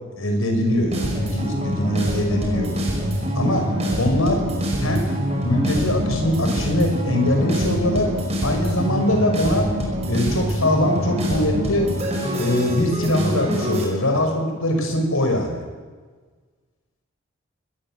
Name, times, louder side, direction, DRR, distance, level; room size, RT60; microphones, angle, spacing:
voice 1, 0.2-2.7 3.4-3.7 4.0-4.4 4.8-5.1 5.4-8.1 8.4-9.7 10.1-11.9 12.3-15.6, left 1 dB, 80° left, 4 dB, 5.6 m, -22 dB
sound 1, 0.9-13.8, equal, 30° right, 5.7 m, -25 dB
24.0 x 20.5 x 7.5 m, 1.5 s
head